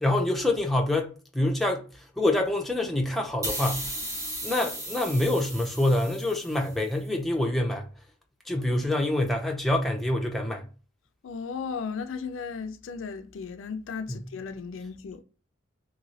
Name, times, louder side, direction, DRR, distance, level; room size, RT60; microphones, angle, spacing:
voice 1, 0.0-3.9 4.4-7.9 8.5-10.7 14.1-14.2, left 1 dB, ahead, 0.4 m, -26 dB
sound 1, 3.4-6.8, right 1 dB, 15° right, 1.0 m, -36 dB
voice 2, 11.2-15.2, left 5 dB, 65° left, 0.4 m, -35 dB
3.0 x 2.6 x 2.7 m
head